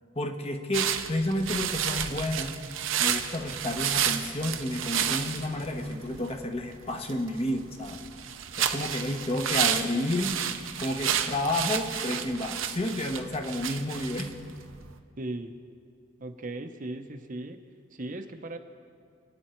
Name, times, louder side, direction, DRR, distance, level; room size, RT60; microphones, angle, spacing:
voice 1, 0.2-2.6 3.0-8.0 8.6-10.4 10.8-14.3, left 1 dB, 30° left, 5 dB, 1.1 m, -31 dB
sound 1, 0.7-15.0, right 9 dB, 80° right, 0.9 m, -31 dB
voice 2, 15.2-15.6 16.2-17.6 17.9-18.6, right 2 dB, 40° right, 6 dB, 0.8 m, -37 dB
28.0 x 9.5 x 4.5 m, 2.3 s
head